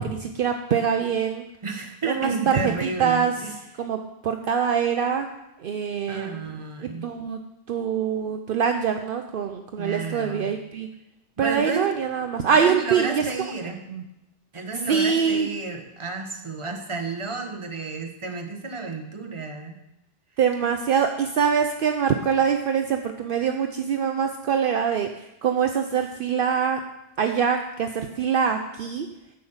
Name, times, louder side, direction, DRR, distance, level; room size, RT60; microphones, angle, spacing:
voice 1, 0.0-1.4 2.1-3.3 3.8-4.0 4.2-5.3 5.6-6.5 6.8-7.4 7.7-10.9 11.4-13.3 13.6-14.0 14.9-15.5 20.4-25.1 25.4-26.8 27.2-29.1, right 7 dB, 65° right, 6 dB, 0.8 m, -24 dB
voice 2, 1.6-3.6 6.1-7.1 9.8-10.5 11.4-11.9 12.6-13.8 14.5-19.8, right 4 dB, 30° right, 4 dB, 1.1 m, -31 dB
10.0 x 5.6 x 7.1 m, 0.89 s
omnidirectional pair, 1.0 m